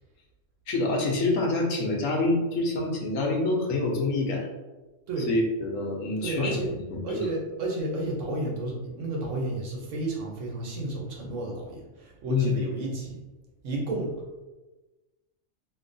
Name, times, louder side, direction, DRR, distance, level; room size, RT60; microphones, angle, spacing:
voice 1, 0.7-4.5 5.3-6.5 6.9-7.3 12.3-12.6, left 2 dB, 85° left, -1 dB, 1.2 m, -26 dB
voice 2, 6.2-6.7 7.0-13.2 13.6-14.1, right 2 dB, 70° right, -1 dB, 1.2 m, -31 dB
3.6 x 3.0 x 2.6 m, 1.2 s
omnidirectional pair, 1.4 m